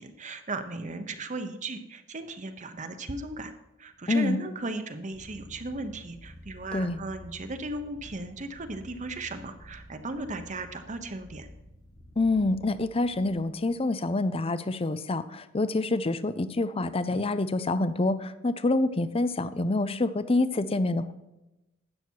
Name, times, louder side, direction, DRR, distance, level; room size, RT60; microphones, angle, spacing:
voice 1, 0.0-3.5 3.8-11.5, right 2 dB, 35° right, 8 dB, 0.9 m, -36 dB
voice 2, 4.1-4.4 6.7-7.0 12.2-21.1, left 2 dB, 30° left, 14 dB, 0.6 m, -27 dB
sound 1, 5.1-13.6, left 1 dB, 85° left, 2.6 m, -50 dB
12.5 x 9.0 x 4.6 m, 0.98 s
head